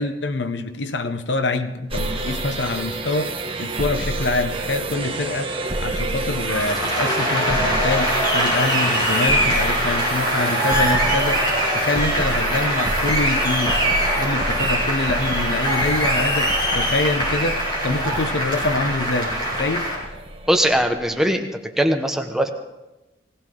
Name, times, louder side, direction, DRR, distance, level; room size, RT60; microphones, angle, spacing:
voice 1, 0.0-13.9 14.2-19.9, left 3 dB, 80° left, 0.9 m, -25 dB
sound 1, 1.9-21.1, right 2 dB, 30° right, 1.4 m, -29 dB
Applause, 6.3-20.0, equal, 25° left, 6.3 m, -22 dB
voice 2, 20.5-21.5 21.8-22.5, right 1 dB, 5° right, 1.1 m, -20 dB
19.5 x 17.0 x 3.8 m
head